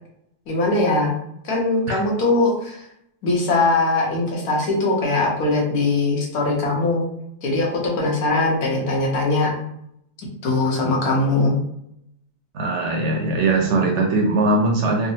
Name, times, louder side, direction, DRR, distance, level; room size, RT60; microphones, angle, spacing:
voice 1, 0.5-1.1 1.4-2.8 3.2-7.0 7.4-9.5 10.4-11.6, left 2 dB, 85° left, -2 dB, 1.4 m, -21 dB
voice 2, 12.5-15.1, right 2 dB, 65° right, 0 dB, 0.8 m, -20 dB
3.5 x 2.0 x 2.7 m, 0.75 s
omnidirectional pair, 1.5 m